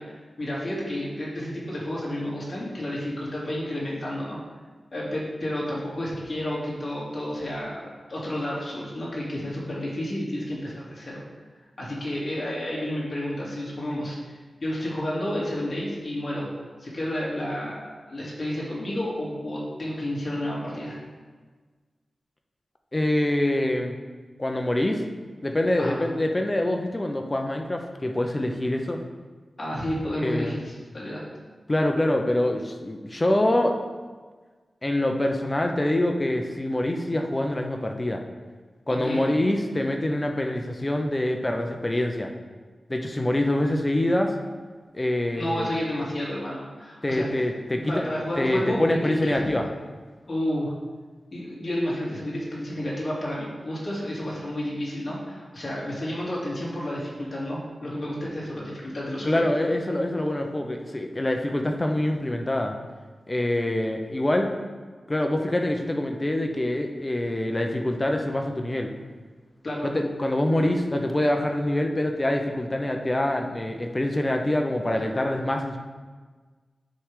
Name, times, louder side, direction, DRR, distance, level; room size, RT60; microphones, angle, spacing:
voice 1, 0.0-4.4 4.9-11.2 11.8-16.5 16.8-21.0 25.8-26.0 29.6-31.2 38.9-39.2 45.3-47.3 47.7-49.5 50.3-50.7 51.3-59.4 69.6-69.9, left 1 dB, 40° left, -6 dB, 2.3 m, -31 dB
voice 2, 22.9-23.9 24.4-25.0 25.4-29.0 30.2-30.6 31.7-33.8 34.8-38.2 38.9-42.3 42.9-44.3 44.9-45.8 47.0-48.1 48.4-49.7 59.2-62.7 63.3-64.5 65.1-68.9 69.8-75.8, left 1 dB, 25° left, 3 dB, 0.7 m, -25 dB
9.2 x 3.4 x 4.9 m, 1.4 s
wide cardioid pair, 95°, 0 cm